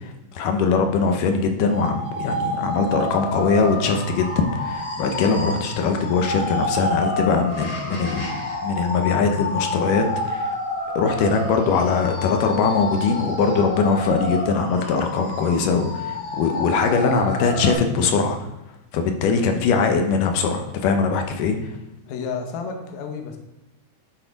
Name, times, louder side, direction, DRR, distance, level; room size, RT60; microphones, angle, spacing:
voice 1, 0.0-8.4 8.6-10.6 11.0-18.4 18.9-21.6, left 5 dB, 90° left, 5 dB, 2.4 m, -21 dB
sound 1, 1.6-17.8, left 1 dB, 50° left, 2.3 m, -29 dB
voice 2, 22.1-23.4, left 5 dB, 70° left, 4 dB, 2.1 m, -31 dB
10.0 x 4.3 x 4.0 m, 0.94 s
omnidirectional pair, 3.6 m